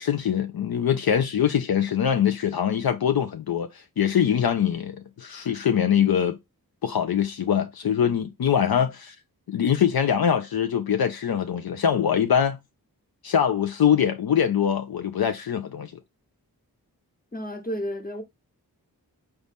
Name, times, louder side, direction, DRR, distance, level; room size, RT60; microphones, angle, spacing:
voice 1, 0.0-6.4 6.8-9.1 9.5-12.6 13.2-15.9, left 8 dB, 70° left, 0.5 m, -23 dB
voice 2, 17.3-18.2, equal, 25° left, 1.1 m, -31 dB
3.9 x 3.0 x 3.5 m
cardioid pair, 40°, 37 cm